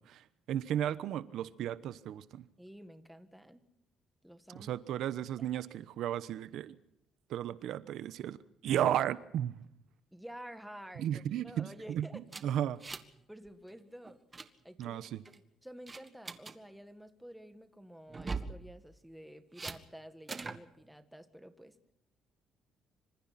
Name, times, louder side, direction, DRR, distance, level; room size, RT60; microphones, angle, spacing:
voice 1, 0.0-2.4 4.5-6.7 7.3-8.4 8.6-9.6 11.0-12.8 14.8-15.2, right 11 dB, 70° right, 1.0 m, -34 dB
voice 2, 2.6-3.6 4.2-4.8 5.4-5.7 8.7-9.0 10.1-12.2 13.3-14.2 14.6-15.0 15.6-21.8, equal, ahead, 1.7 m, -50 dB
sound 1, 12.3-13.2 13.5-13.7 14.0-14.5 15.0-15.4 15.9-16.6 18.1-18.6 19.6-19.8 20.3-20.6, right 4 dB, 20° right, 1.5 m, -41 dB
27.0 x 26.0 x 4.3 m
cardioid pair, 155°, 0 cm